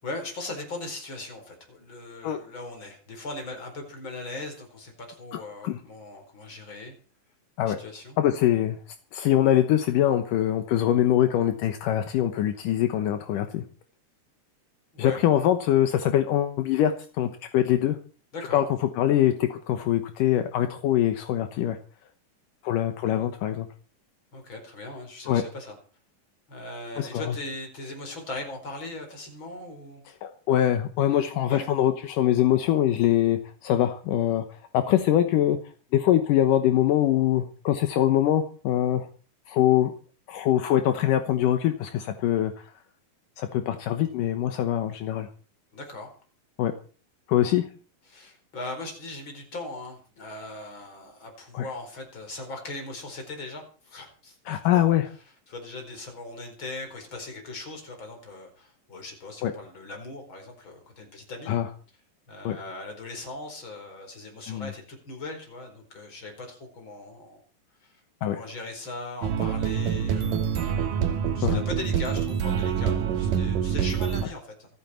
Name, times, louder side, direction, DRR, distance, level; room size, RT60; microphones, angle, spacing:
voice 1, 0.0-6.9 7.6-8.2 14.9-15.2 18.3-18.7 24.3-25.7 26.5-30.0 31.5-31.7 45.7-46.1 48.1-54.9 55.5-61.5 62.3-67.4 67.8-67.9 68.2-70.9 71.3-74.7, left 2 dB, 35° left, 4 dB, 5.1 m, -39 dB
voice 2, 8.2-8.8 9.1-13.6 15.0-18.0 18.5-18.6 19.0-21.8 22.6-23.7 25.3-25.4 27.0-27.2 30.2-34.4 34.7-35.6 35.9-39.1 39.5-39.9 40.3-42.5 43.4-45.3 46.6-46.7 47.3-47.6 51.5-51.7 54.5-55.1 59.4-59.5 61.5-61.7 62.4-62.6 64.5-64.7 68.2-68.4 71.4-71.6, left 12 dB, 75° left, 7 dB, 2.6 m, -23 dB
sound 1, 69.2-74.2, right 8 dB, 75° right, 2.9 m, -26 dB
27.5 x 9.3 x 4.5 m, 0.40 s
omnidirectional pair, 3.9 m